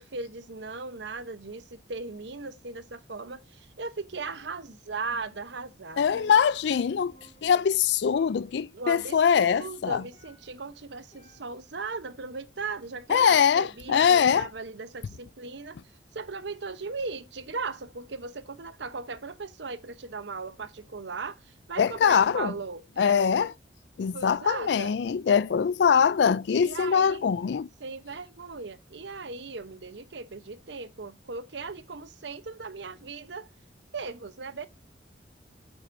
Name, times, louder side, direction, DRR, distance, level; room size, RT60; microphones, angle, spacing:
voice 1, 0.0-6.2 8.7-15.8 16.1-23.3 24.1-24.9 26.6-27.3 27.8-33.5 33.9-34.7, right 4 dB, 70° right, 0.9 m, -38 dB
Percussion, 4.1-4.8 5.1-6.9 7.1-7.8 8.1-8.6 9.1-10.7 11.1-11.8, left 1 dB, 30° left, 3.4 m, -58 dB
voice 2, 6.0-7.1 7.4-10.0 13.1-14.5 21.8-22.5 23.0-23.5 24.0-27.7, left 7 dB, 65° left, 0.4 m, -23 dB
8.6 x 7.9 x 2.6 m
head